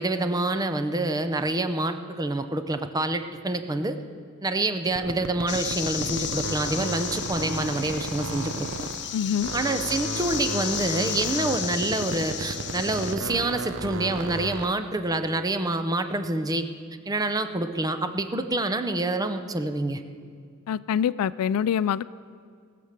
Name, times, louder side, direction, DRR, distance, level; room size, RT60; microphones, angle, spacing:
voice 1, 0.0-4.0 4.4-8.9 9.5-16.7 17.1-20.0, right 2 dB, 15° right, 9 dB, 0.5 m, -27 dB
sound 1, 4.9-9.1 9.4-14.8, right 3 dB, 60° right, 0.7 m, -34 dB
sound 2, 5.5-13.2, left 9 dB, 55° left, 0.8 m, -33 dB
voice 2, 9.1-9.5 20.7-22.0, left 8 dB, 75° left, 17 dB, 0.3 m, -25 dB
18.5 x 6.8 x 6.6 m, 2.1 s
head